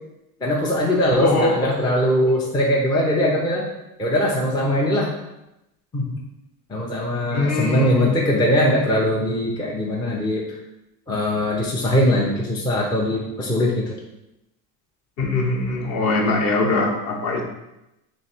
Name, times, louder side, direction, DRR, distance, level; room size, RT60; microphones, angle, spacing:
voice 1, 0.4-3.7 4.0-5.1 5.9-6.2 6.7-10.4 11.1-13.9, equal, 10° left, -3 dB, 0.5 m, -21 dB
voice 2, 1.1-1.8 7.3-8.2 15.2-17.4, left 2 dB, 40° left, 1 dB, 0.9 m, -22 dB
3.1 x 3.1 x 4.3 m, 0.91 s
supercardioid pair, 125°, 43 cm